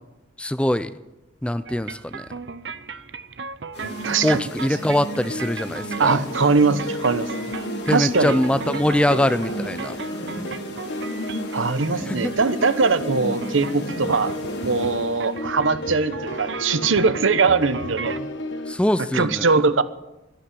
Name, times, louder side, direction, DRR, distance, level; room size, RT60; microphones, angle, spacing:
voice 1, 0.4-0.9 1.4-2.3 4.2-6.2 7.9-10.0 12.0-12.3 18.7-19.6, left 1 dB, 5° left, 13 dB, 0.5 m, -23 dB
sound 1, 1.7-18.2, right 4 dB, 65° right, 0.7 m, -36 dB
sound 2, 3.7-15.3, equal, 55° left, 3.0 m, -35 dB
voice 2, 4.0-4.4 6.0-7.3 7.9-8.4 11.5-14.3 14.6-18.3 19.1-19.8, right 4 dB, 90° right, 13 dB, 0.9 m, -21 dB
sound 3, 4.6-18.7, left 1 dB, 75° left, 1.4 m, -34 dB
12.5 x 11.5 x 10.0 m, 0.98 s
head